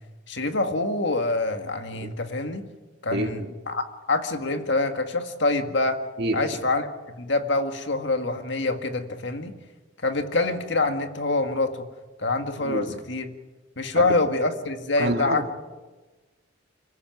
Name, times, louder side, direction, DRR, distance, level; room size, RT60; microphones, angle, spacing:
voice 1, 0.3-2.6 3.0-3.4 3.7-6.0 6.3-6.9 7.1-9.5 10.0-11.9 12.2-13.3 13.8-15.4, left 2 dB, 60° left, 7 dB, 1.9 m, -25 dB
voice 2, 3.1-3.5 6.2-6.6 12.6-13.0 13.9-14.1 15.0-15.5, right 1 dB, 55° right, 3 dB, 2.0 m, -29 dB
25.5 x 15.5 x 9.3 m, 1.2 s
head